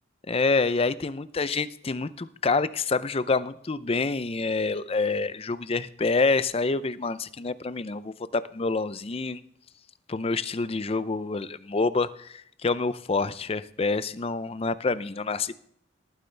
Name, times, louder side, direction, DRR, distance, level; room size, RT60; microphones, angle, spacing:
voice 1, 0.3-9.4 10.1-15.6, left 3 dB, 30° left, 14 dB, 0.5 m, -27 dB
18.5 x 9.3 x 3.3 m, 0.68 s
head